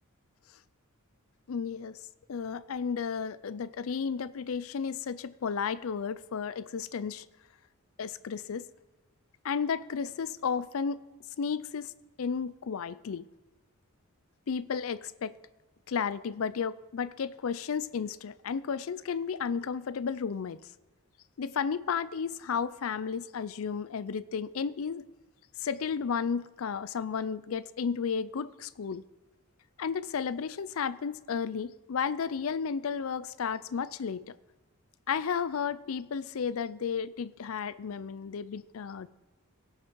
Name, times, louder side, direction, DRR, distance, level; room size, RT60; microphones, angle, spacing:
voice 1, 1.5-2.0 2.3-7.2 8.0-8.7 9.4-11.0 11.4-11.9 12.2-13.2 14.5-15.4 15.9-20.6 21.4-25.0 25.6-29.0 29.8-34.3 35.1-39.1, left 6 dB, 70° left, 17 dB, 0.4 m, -33 dB
17.5 x 6.1 x 4.6 m, 1.2 s
head